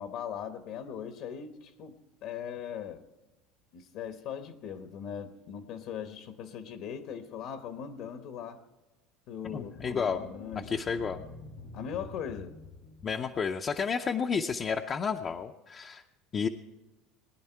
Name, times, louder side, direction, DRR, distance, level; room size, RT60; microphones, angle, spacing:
voice 1, 0.0-3.0 3.7-8.6 9.3-10.7 11.7-12.6, left 8 dB, 60° left, 8 dB, 1.0 m, -40 dB
sound 1, 9.5-13.7, left 4 dB, 85° left, 2.3 m, -48 dB
voice 2, 9.5-10.2 10.7-11.2 13.0-16.0 16.3-16.5, left 6 dB, 30° left, 3 dB, 0.6 m, -31 dB
20.0 x 10.5 x 4.5 m, 1.1 s
supercardioid pair, 135°, 0 cm